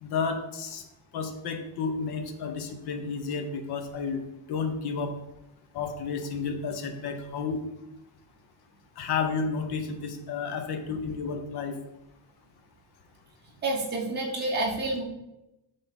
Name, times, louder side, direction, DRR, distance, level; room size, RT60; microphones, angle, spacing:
voice 1, 0.0-0.8 1.1-4.2 4.5-5.1 5.7-7.6 9.0-11.8, left 5 dB, 50° left, 6 dB, 0.9 m, -31 dB
voice 2, 13.6-15.0, right 2 dB, 20° right, -3 dB, 1.2 m, -28 dB
6.0 x 3.8 x 5.2 m, 0.91 s
cardioid pair, 170°, 50 cm